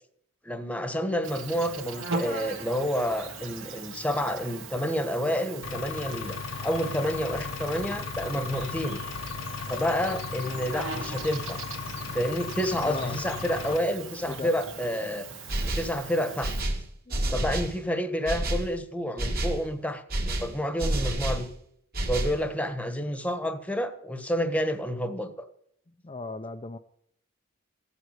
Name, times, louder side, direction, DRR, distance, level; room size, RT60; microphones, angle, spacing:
voice 1, 0.4-9.0 9.7-11.6 12.1-15.3 15.6-16.5 17.3-21.5 22.1-25.3, equal, 5° left, 1.2 m, -29 dB
Insect, 1.2-16.6, right 4 dB, 70° right, 2.3 m, -40 dB
Engine, 5.6-13.8, left 5 dB, 85° left, 1.1 m, -36 dB
voice 2, 12.8-13.2 14.3-14.5 17.1-17.3 26.0-26.8, left 3 dB, 25° left, 0.6 m, -37 dB
sound 1, 15.5-16.0 16.4-17.8 18.3-18.7 19.2-19.6 20.1-21.5 21.9-22.4, right 1 dB, 45° right, 2.5 m, -29 dB
15.5 x 8.0 x 9.0 m
head